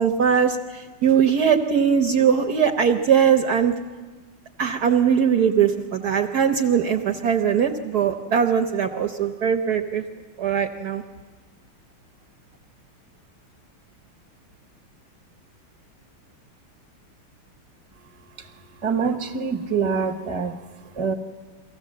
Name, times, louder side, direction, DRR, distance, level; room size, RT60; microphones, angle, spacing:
voice 1, 0.0-3.7 4.6-10.0 10.4-11.0, right 7 dB, 60° right, 5 dB, 1.1 m, -20 dB
voice 2, 18.4-21.1, right 5 dB, 25° right, 4 dB, 0.7 m, -26 dB
23.5 x 16.5 x 7.5 m, 1.4 s
omnidirectional pair, 2.3 m